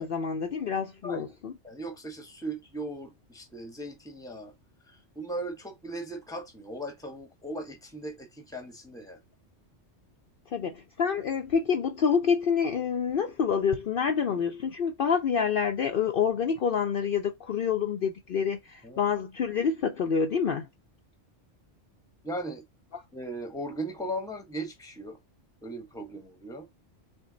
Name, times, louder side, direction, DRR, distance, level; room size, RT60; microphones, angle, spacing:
voice 1, 0.0-1.5 10.5-20.7, left 6 dB, 55° left, 0.7 m, -27 dB
voice 2, 1.6-4.5 4.9-9.2 18.8-19.0 22.2-22.6 23.1-25.2 25.6-26.7, right 1 dB, 5° left, 1.0 m, -38 dB
6.1 x 2.2 x 3.9 m
omnidirectional pair, 1.2 m